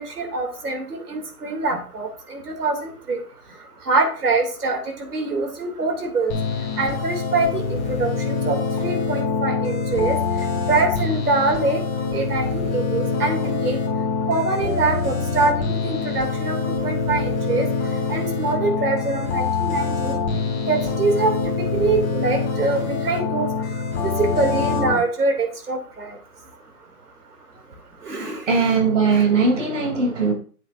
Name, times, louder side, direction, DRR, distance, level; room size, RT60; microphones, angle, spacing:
voice 1, 0.0-3.2 3.9-6.3 6.8-8.6 8.8-10.2 10.7-11.8 12.1-13.8 14.3-17.7 18.1-20.2 20.7-21.3 21.7-23.5 24.0-26.1 28.1-28.4 29.1-29.2, right 3 dB, 75° right, 4 dB, 2.8 m, -24 dB
sound 1, 6.3-24.9, left 4 dB, 30° left, 2.6 m, -25 dB
voice 2, 28.5-30.3, right 4 dB, 50° right, 2 dB, 3.1 m, -19 dB
9.0 x 8.0 x 2.6 m, 0.41 s
hypercardioid pair, 155°, 46 cm